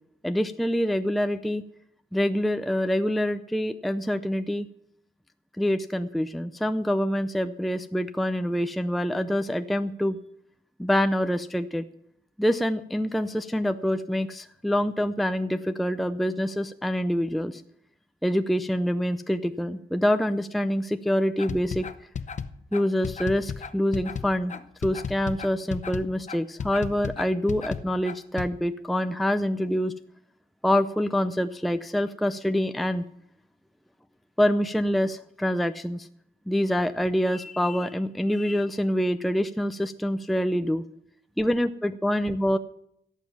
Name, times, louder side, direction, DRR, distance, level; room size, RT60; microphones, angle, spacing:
voice 1, 0.2-1.6 2.1-4.7 5.6-10.2 10.8-11.9 12.4-17.6 18.2-21.9 22.7-29.9 30.6-33.0 34.4-36.1 36.5-40.8 41.4-42.6, equal, ahead, 10 dB, 0.5 m, -26 dB
sound 1, 21.4-28.5, left 6 dB, 45° left, 0.8 m, -34 dB
17.0 x 7.4 x 7.0 m, 0.73 s
cardioid pair, 110°, 18 cm